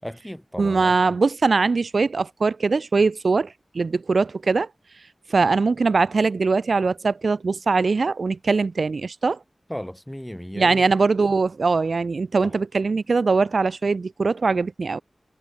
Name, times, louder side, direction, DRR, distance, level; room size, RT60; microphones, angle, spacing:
voice 1, 0.0-1.2 5.4-5.5 9.7-10.8 12.4-12.5, equal, 5° left, 7.5 m, -35 dB
voice 2, 0.6-4.7 5.3-9.4 10.5-15.0, right 4 dB, 70° right, 1.2 m, -21 dB
wide cardioid pair, 90°, 0 cm